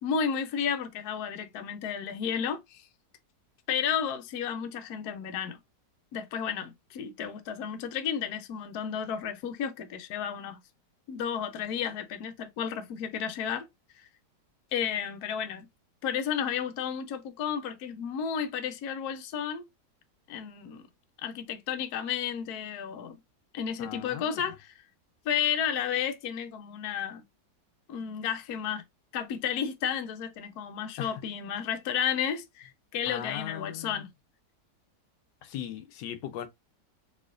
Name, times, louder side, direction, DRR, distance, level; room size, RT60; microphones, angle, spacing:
voice 1, 0.0-2.9 3.7-5.6 6.1-10.6 11.1-13.7 14.7-15.7 16.0-19.6 20.3-20.9 21.2-23.1 23.5-24.7 25.2-27.2 27.9-28.8 29.1-34.1, left 8 dB, 65° left, 1.1 m, -32 dB
voice 2, 23.8-24.5 31.0-31.2 33.1-34.1 35.4-36.5, left 10 dB, 90° left, 1.3 m, -39 dB
4.2 x 3.1 x 2.4 m
omnidirectional pair, 1.9 m